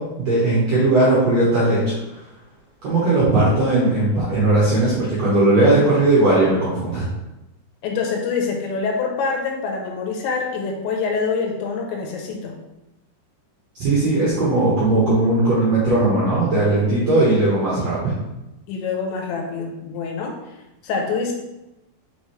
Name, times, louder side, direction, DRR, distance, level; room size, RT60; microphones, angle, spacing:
voice 1, 0.0-2.2 2.8-7.1 13.7-18.1, right 2 dB, 65° right, -7 dB, 1.7 m, -18 dB
voice 2, 7.8-12.5 18.7-20.4 20.8-21.3, left 5 dB, 90° left, 1 dB, 3.3 m, -25 dB
6.2 x 5.0 x 3.3 m, 0.95 s
omnidirectional pair, 5.0 m